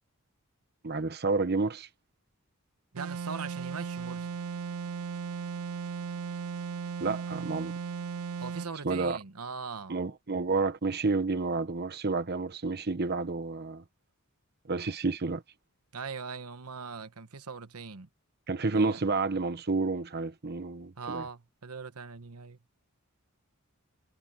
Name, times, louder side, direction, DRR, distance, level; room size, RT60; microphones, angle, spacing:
voice 1, 0.8-1.9 7.0-7.7 8.8-9.2 9.9-13.8 14.7-15.4 18.5-21.2, right 3 dB, 45° right, 1.0 m, -30 dB
voice 2, 2.9-4.3 8.4-10.0 15.9-18.1 18.7-19.0 21.0-22.6, right 5 dB, 80° right, 1.1 m, -40 dB
sound 1, 3.0-8.7, right 5 dB, 65° right, 0.4 m, -36 dB
head